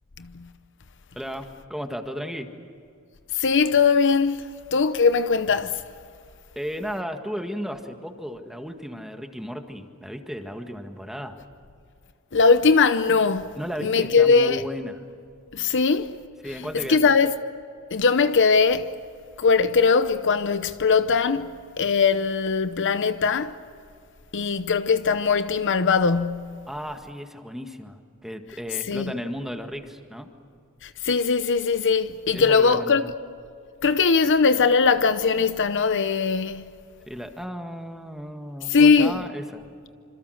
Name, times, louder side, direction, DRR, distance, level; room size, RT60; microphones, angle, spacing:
voice 1, 0.2-0.5 3.3-5.8 12.3-13.5 13.8-14.6 15.5-16.1 16.9-17.3 17.9-18.9 19.4-21.5 21.8-23.6 24.3-26.6 28.9-29.1 30.8-33.0 33.8-36.6 38.7-39.3, left 5 dB, 55° left, 0.8 m, -20 dB
voice 2, 1.1-2.5 6.6-11.4 13.6-15.0 16.4-17.1 26.7-30.3 32.3-33.1 37.1-39.6, equal, ahead, 1.8 m, -34 dB
27.0 x 26.5 x 6.5 m
head